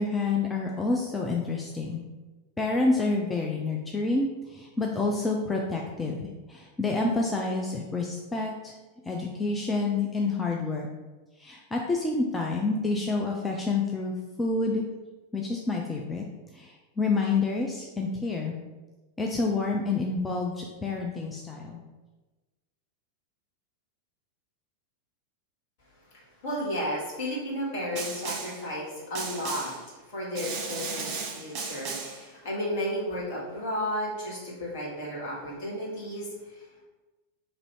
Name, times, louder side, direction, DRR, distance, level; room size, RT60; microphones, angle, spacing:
voice 1, 0.0-2.0 2.6-8.7 9.1-10.9 11.4-14.1 14.4-14.8 15.3-16.2 16.5-18.5 19.2-21.8, left 3 dB, 15° left, -1 dB, 0.4 m, -28 dB
voice 2, 26.1-29.7 30.1-36.6, equal, 50° left, -5 dB, 1.5 m, -33 dB
Snare drum, 28.0-28.7 29.2-29.9 30.4-32.3, right 4 dB, 40° right, 0.6 m, -35 dB
2.9 x 2.7 x 4.4 m, 1.2 s
figure-of-eight pair, 90°, 0 cm